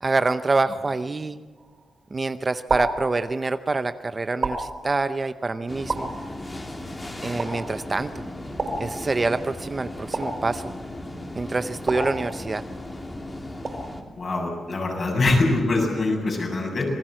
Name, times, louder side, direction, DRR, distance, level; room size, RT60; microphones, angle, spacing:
voice 1, 0.0-1.4 2.1-6.1 7.2-8.3 8.8-10.6 11.3-12.6, right 3 dB, 25° right, 11 dB, 0.7 m, -26 dB
sound 1, 1.6-2.0 2.7-3.7 4.4-5.3 5.9-6.7 7.4-8.0 8.6-9.5 10.1-11.0 11.9-12.8 13.6-14.2, right 3 dB, 45° right, 4.9 m, -32 dB
sound 2, 5.7-14.0, left 1 dB, 20° left, 2.8 m, -36 dB
voice 2, 14.2-16.9, left 2 dB, 45° left, 0 dB, 7.5 m, -23 dB
27.0 x 20.0 x 7.7 m, 1.4 s
wide cardioid pair, 145°, 0 cm